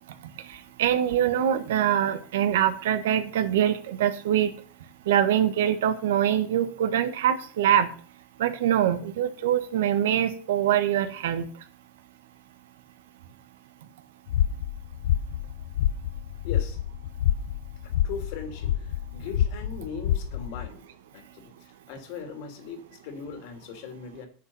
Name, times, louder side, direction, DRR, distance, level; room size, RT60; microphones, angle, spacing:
voice 1, 0.0-4.5 4.8-7.9 8.4-11.7, right 10 dB, 85° right, 10 dB, 1.5 m, -24 dB
sound 1, 14.3-20.7, left 11 dB, 80° left, 0.7 m, -28 dB
voice 2, 16.4-16.8 17.8-20.8 21.1-24.3, left 6 dB, 55° left, 6 dB, 2.8 m, -39 dB
9.4 x 8.9 x 5.6 m, 0.41 s
supercardioid pair, 155°, 0 cm